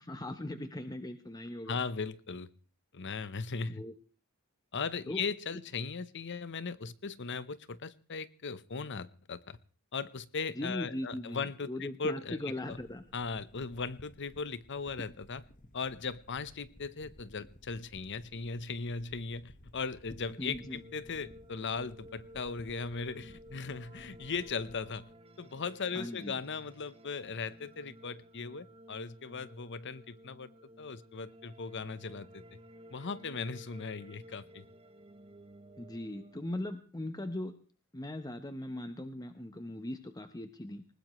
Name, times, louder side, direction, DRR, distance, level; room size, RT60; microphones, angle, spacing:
voice 1, 0.0-1.8 3.7-3.9 5.1-5.2 5.5-5.6 10.5-13.1 20.4-20.8 25.9-26.4 35.8-37.6 37.9-40.9, left 1 dB, 20° left, 9 dB, 1.0 m, -39 dB
voice 2, 1.7-2.5 2.9-3.8 4.7-9.6 9.9-12.4 12.7-12.8 13.1-15.4 15.7-25.1 25.4-30.5 30.8-32.4 32.9-34.6, left 5 dB, 55° left, 16 dB, 0.9 m, -38 dB
sound 1, 12.7-25.0, left 1 dB, 40° left, 1.4 m, -56 dB
sound 2, 19.9-36.7, equal, 25° right, 0.9 m, -55 dB
20.0 x 20.0 x 3.1 m, 0.40 s
head